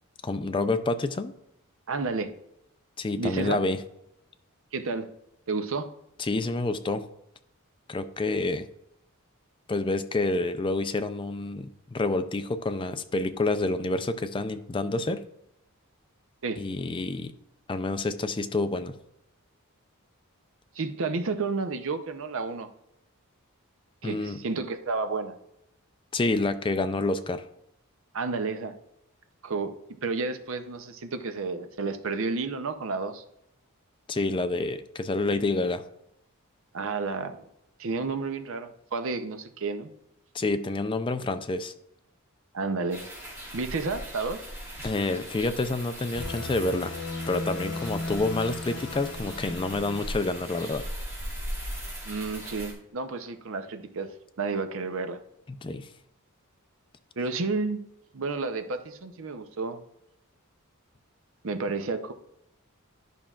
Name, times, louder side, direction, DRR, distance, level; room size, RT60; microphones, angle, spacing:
voice 1, 0.2-1.3 3.0-3.8 6.2-7.1 7.9-8.7 9.7-15.2 16.6-17.3 17.7-18.9 24.0-24.4 26.1-27.4 34.1-35.8 40.3-41.7 44.8-46.9 47.3-50.8 55.5-55.9, left 2 dB, 25° left, 10 dB, 0.4 m, -28 dB
voice 2, 1.9-2.3 3.2-3.6 4.7-5.1 5.5-5.9 16.4-16.6 20.8-22.7 24.0-25.4 28.1-28.7 29.4-29.7 30.0-33.2 36.7-37.4 37.8-39.9 42.5-43.0 43.5-44.4 52.0-54.1 54.4-55.2 57.2-57.8 58.1-59.8 61.4-62.1, right 4 dB, 65° right, 9 dB, 0.6 m, -31 dB
sound 1, 42.9-52.7, equal, 10° right, 2.2 m, -39 dB
sound 2, 46.1-50.6, left 2 dB, 90° left, 0.7 m, -37 dB
11.0 x 5.6 x 2.4 m, 0.81 s
head